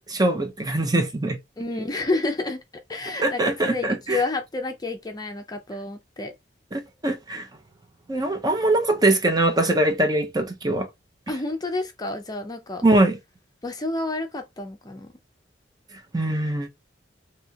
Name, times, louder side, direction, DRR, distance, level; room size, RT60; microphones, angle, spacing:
voice 1, 0.0-1.4 3.2-4.2 6.7-7.5 8.1-10.9 12.8-13.2 16.1-16.7, right 2 dB, 20° right, 0.7 m, -22 dB
voice 2, 1.6-2.6 2.9-6.3 11.3-12.8 13.6-15.1, left 2 dB, 20° left, 0.5 m, -29 dB
3.3 x 2.8 x 2.8 m
head